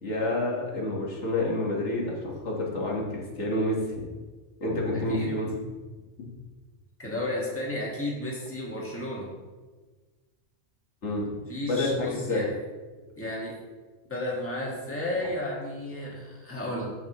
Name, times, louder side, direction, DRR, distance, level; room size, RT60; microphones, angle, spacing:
voice 1, 0.0-4.1 4.6-5.5 11.0-11.3 11.7-12.5, left 1 dB, 70° left, -3 dB, 1.9 m, -28 dB
voice 2, 4.9-5.3 7.0-9.3 11.5-12.5 13.2-13.6 14.1-16.9, left 1 dB, 10° left, -4 dB, 1.6 m, -33 dB
14.5 x 4.9 x 3.1 m, 1.3 s
omnidirectional pair, 1.2 m